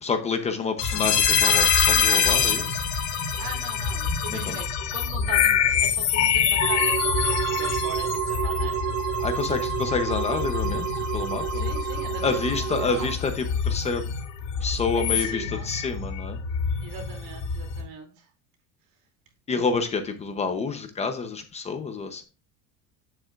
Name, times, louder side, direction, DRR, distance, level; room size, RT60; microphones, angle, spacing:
voice 1, 0.0-2.8 4.3-4.6 9.2-10.9 11.1-11.6 12.2-14.0 14.6-16.4 19.5-22.2, left 4 dB, 20° left, 7 dB, 0.8 m, -28 dB
sound 1, 0.8-17.8, left 7 dB, 80° left, 2.6 m, -25 dB
voice 2, 3.3-8.8 11.5-13.1 14.9-15.7 16.8-18.2, right 6 dB, 65° right, 3 dB, 2.8 m, -40 dB
sound 2, 6.6-13.1, right 9 dB, 45° right, 0.8 m, -29 dB
9.2 x 7.7 x 2.5 m, 0.33 s
cardioid pair, 170°, 33 cm